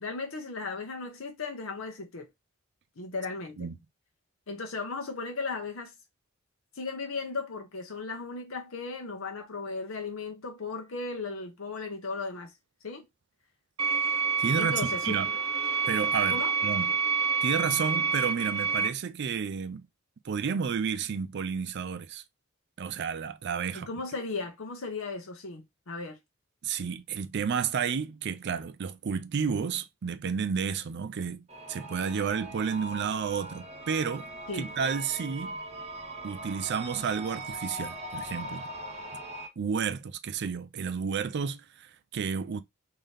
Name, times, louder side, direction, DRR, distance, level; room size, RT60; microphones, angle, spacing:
voice 1, 0.0-2.3 3.0-3.7 4.5-5.9 6.8-12.5 12.8-13.1 14.6-15.2 16.3-16.5 23.7-26.2 34.5-34.7, left 4 dB, 75° left, 0.9 m, -36 dB
sound 1, 13.8-18.9, right 5 dB, 90° right, 1.0 m, -28 dB
voice 2, 14.4-15.3 15.9-16.9 17.4-19.8 20.2-22.2 22.8-23.9 26.6-34.3 34.5-35.5 36.2-38.6 39.6-42.6, right 6 dB, 55° right, 0.4 m, -31 dB
sound 2, 31.5-39.5, right 1 dB, 30° right, 0.8 m, -40 dB
3.8 x 2.7 x 3.3 m
head